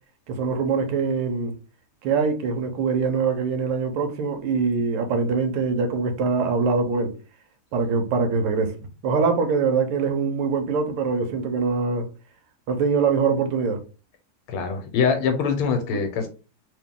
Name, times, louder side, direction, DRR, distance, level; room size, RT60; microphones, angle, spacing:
voice 1, 0.3-1.5 2.0-7.1 7.7-8.7 9.0-12.1 12.7-13.8 15.9-16.0, right 5 dB, 85° right, 1.7 m, -23 dB
voice 2, 14.5-16.3, left 6 dB, 85° left, 1.7 m, -23 dB
3.5 x 3.0 x 3.6 m
omnidirectional pair, 2.4 m